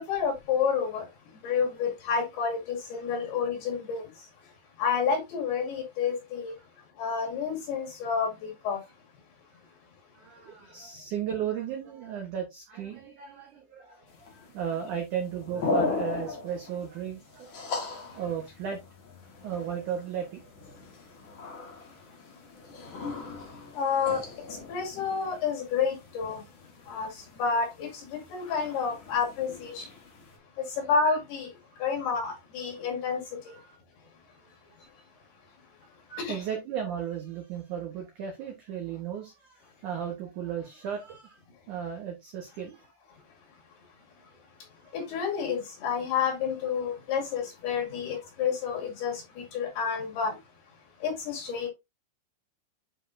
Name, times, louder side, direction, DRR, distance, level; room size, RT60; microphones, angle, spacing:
voice 1, 0.0-4.5 4.8-6.6 7.0-8.8 23.7-26.5 26.8-30.0 30.6-33.6 34.8-34.9 36.1-36.4 44.6-50.4 50.7-51.7, left 6 dB, 60° left, 4.0 m, -30 dB
voice 2, 10.2-14.0 14.3-17.8 18.1-18.8 19.4-20.4 35.8-35.9 36.3-41.4 41.7-42.9 44.8-45.0, right 8 dB, 75° right, 1.8 m, -35 dB
sound 1, 14.1-30.4, left 3 dB, 80° left, 1.1 m, -38 dB
9.7 x 4.9 x 2.6 m
omnidirectional pair, 5.3 m